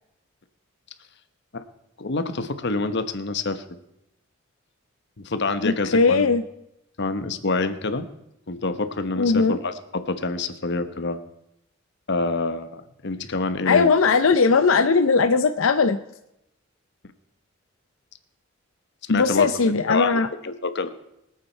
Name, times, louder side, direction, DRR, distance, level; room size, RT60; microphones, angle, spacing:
voice 1, 2.0-3.6 5.2-6.3 7.0-8.1 8.5-11.2 12.1-13.9 19.1-20.9, left 3 dB, 60° left, 11 dB, 1.0 m, -27 dB
voice 2, 5.6-6.4 9.2-9.6 13.7-16.0 19.1-20.3, left 4 dB, 90° left, 9 dB, 0.6 m, -19 dB
23.5 x 8.7 x 4.5 m, 0.83 s
head